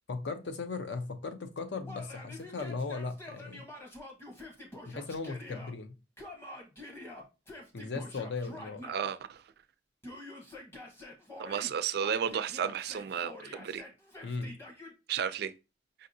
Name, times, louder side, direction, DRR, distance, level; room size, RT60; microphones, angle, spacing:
voice 1, 0.1-3.6 4.8-5.9 7.7-8.8 14.2-14.6, left 4 dB, 70° left, 0.6 m, -37 dB
Yell, 1.8-5.7 6.2-9.1 10.0-11.7 12.0-14.9, left 1 dB, 15° left, 0.9 m, -47 dB
voice 2, 8.9-9.4 11.4-13.8 15.1-15.5, right 8 dB, 60° right, 0.3 m, -33 dB
5.1 x 2.6 x 2.6 m
head